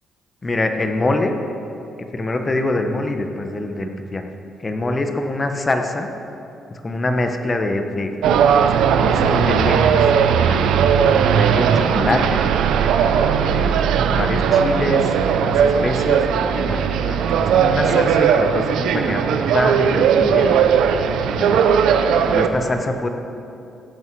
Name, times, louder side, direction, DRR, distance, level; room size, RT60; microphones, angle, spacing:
voice 1, 0.4-1.3 2.1-4.3 4.6-6.1 6.7-8.7 9.0-10.0 10.5-12.4 13.4-13.7 14.1-20.5 21.3-21.7 22.3-23.1, left 2 dB, 25° left, 5 dB, 1.2 m, -24 dB
sound 1, 8.2-22.5, right 7 dB, 85° right, 0.7 m, -17 dB
17.0 x 8.5 x 4.8 m, 2.7 s
cardioid pair, 90°, 0 cm